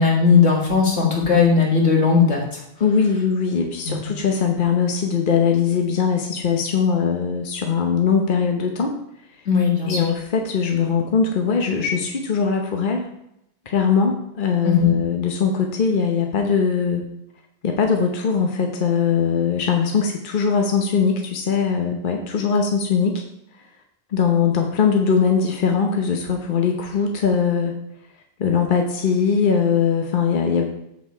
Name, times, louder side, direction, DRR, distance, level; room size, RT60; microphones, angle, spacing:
voice 1, 0.0-2.6 3.9-4.0 9.5-10.0 14.6-14.9, left 5 dB, 75° left, -1 dB, 2.2 m, -17 dB
voice 2, 2.8-8.9 9.8-13.1 13.7-17.0 17.6-23.2 24.1-27.7 28.4-30.6, left 6 dB, 50° left, 3 dB, 1.0 m, -21 dB
7.5 x 6.7 x 4.5 m, 0.81 s
omnidirectional pair, 1.2 m